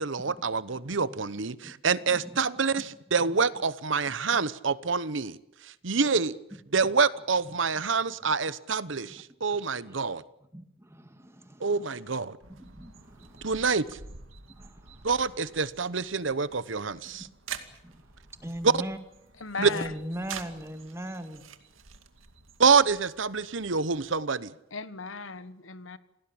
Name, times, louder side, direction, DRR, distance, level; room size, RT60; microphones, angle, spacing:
voice 1, 0.0-5.4 5.6-6.4 6.7-10.2 11.6-12.4 13.4-14.0 15.0-17.3 18.6-18.7 19.6-19.7 22.6-24.5, right 5 dB, 75° right, 1.0 m, -26 dB
voice 2, 10.5-12.0 12.5-13.9 14.4-15.1 17.8-18.1 18.3-19.0 19.6-21.4, equal, 15° right, 2.0 m, -40 dB
sound 1, 12.4-24.2, right 6 dB, 90° right, 2.3 m, -47 dB
voice 3, 19.4-19.9 24.7-26.0, left 4 dB, 80° left, 1.5 m, -36 dB
28.5 x 19.0 x 8.8 m
head